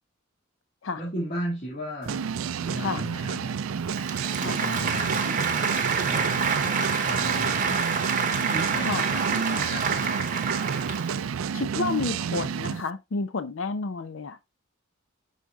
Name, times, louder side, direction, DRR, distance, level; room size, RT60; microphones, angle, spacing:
voice 1, 1.0-2.3 2.6-3.6 4.4-7.8 8.5-10.2, equal, 40° left, 2.3 m, -36 dB
sound 1, 2.1-12.8, right 6 dB, 80° right, 0.4 m, -30 dB
Applause, 3.9-11.3, right 5 dB, 40° right, 0.8 m, -28 dB
voice 2, 11.5-14.4, left 4 dB, 65° left, 0.5 m, -30 dB
11.0 x 4.1 x 2.3 m
head